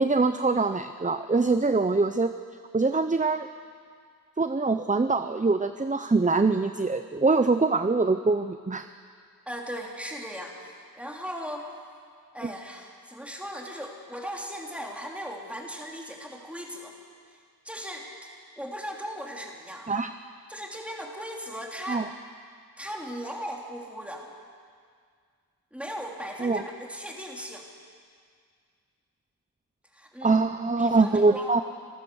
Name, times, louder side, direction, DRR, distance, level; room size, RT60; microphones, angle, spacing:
voice 1, 0.0-2.3 2.7-3.5 4.4-8.9 12.4-12.5 19.9-20.1 21.9-22.1 26.4-26.6 30.2-31.6, right 3 dB, 20° right, 9 dB, 0.6 m, -23 dB
voice 2, 9.5-10.7 11.0-11.7 12.3-16.9 17.3-18.1 18.6-20.0 20.5-22.1 22.8-24.3 25.7-27.7 29.9-30.4 30.8-31.5, equal, 5° right, -1 dB, 3.3 m, -38 dB
26.5 x 14.0 x 7.1 m, 2.1 s
wide cardioid pair, 60°, 37 cm